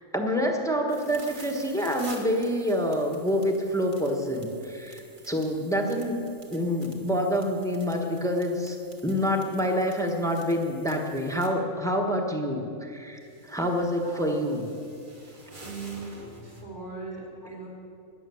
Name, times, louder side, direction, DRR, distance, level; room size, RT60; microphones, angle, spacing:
voice 1, 0.1-6.2 6.5-8.8 9.0-14.6, equal, 5° left, 2 dB, 1.2 m, -27 dB
sound 1, 0.9-11.5 13.0-16.6, right 2 dB, 40° right, 1.7 m, -50 dB
voice 2, 15.6-17.7, right 3 dB, 55° right, -4 dB, 3.5 m, -39 dB
20.5 x 7.5 x 7.1 m, 2.5 s
omnidirectional pair, 1.4 m